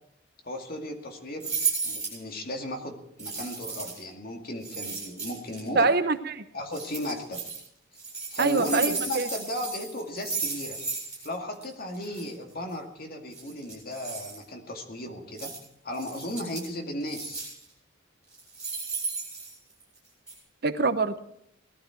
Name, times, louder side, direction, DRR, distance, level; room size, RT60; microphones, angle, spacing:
voice 1, 0.4-1.5 1.8-5.9 6.5-7.4 8.3-10.8 11.2-15.5 15.8-17.4, left 1 dB, 45° left, 3 dB, 2.1 m, -35 dB
sound 1, 1.4-2.2 3.2-4.0 4.6-5.6 6.7-7.6 7.9-11.3 11.5-11.6 11.9-12.2 13.3-14.4 15.4-15.6 15.9-16.7 17.1-17.6 18.3-20.0 20.3-20.4, right 4 dB, 5° right, 7.8 m, -34 dB
voice 2, 5.8-6.4 8.4-9.3 20.6-21.1, right 3 dB, 50° right, 10 dB, 0.8 m, -24 dB
19.0 x 12.5 x 4.6 m, 0.75 s
head